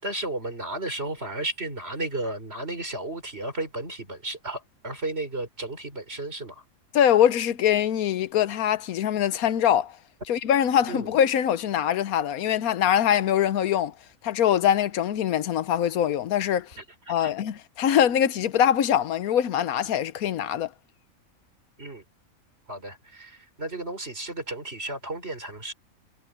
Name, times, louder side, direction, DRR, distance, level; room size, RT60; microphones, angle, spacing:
voice 1, 0.0-6.6 10.9-11.1 16.8-17.3 21.8-22.0 22.7-25.7, right 2 dB, 45° right, 4.7 m, -34 dB
voice 2, 6.9-10.0 10.3-13.9 14.2-16.8 17.1-20.7, left 10 dB, 85° left, 1.3 m, -23 dB
omnidirectional pair, 1.5 m